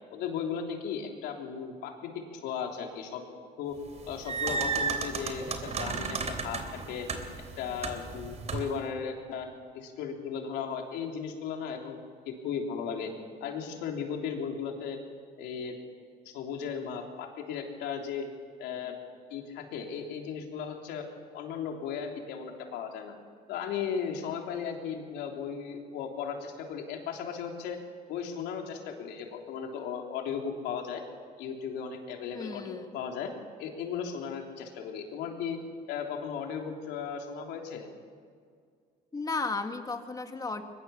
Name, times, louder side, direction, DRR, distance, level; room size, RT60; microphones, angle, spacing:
voice 1, 0.1-3.2 3.6-3.8 4.1-7.1 7.6-9.5 9.7-12.0 12.3-13.1 13.4-15.0 15.4-15.7 16.2-18.2 18.6-18.9 19.3-21.1 21.3-23.1 23.5-27.8 28.1-31.0 31.4-33.3 33.6-35.6 35.9-37.9, left 7 dB, 90° left, 2 dB, 3.4 m, -36 dB
sound 1, 3.9-8.8, right 5 dB, 40° right, 3.1 m, -34 dB
voice 2, 32.3-33.0 39.1-40.6, left 3 dB, 20° left, 6 dB, 2.0 m, -34 dB
23.0 x 20.5 x 7.1 m, 2.1 s
cardioid pair, 110°, 17 cm